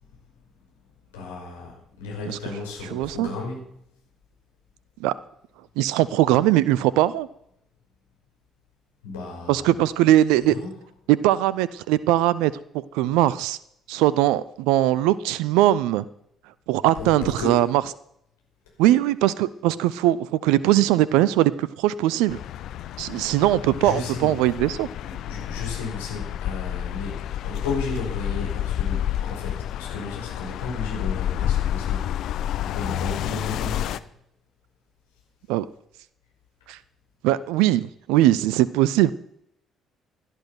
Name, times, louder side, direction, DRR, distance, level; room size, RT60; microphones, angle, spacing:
voice 1, 1.1-3.6 9.0-9.7 10.4-10.7 16.9-17.6 23.8-24.3 25.0-32.1 32.6-34.0, left 3 dB, 70° left, -1 dB, 5.5 m, -34 dB
voice 2, 2.9-3.3 5.0-5.1 5.8-7.3 9.5-10.5 11.1-12.5 12.9-13.6 13.9-16.0 16.7-17.8 18.8-22.4 23.0-24.9 35.5-35.7 36.7-36.8 37.2-39.1, right 14 dB, 65° right, 19 dB, 0.5 m, -20 dB
sound 1, 22.3-34.0, left 11 dB, 55° left, 0.6 m, -29 dB
16.5 x 11.0 x 6.0 m, 0.75 s
figure-of-eight pair, 45°, 0 cm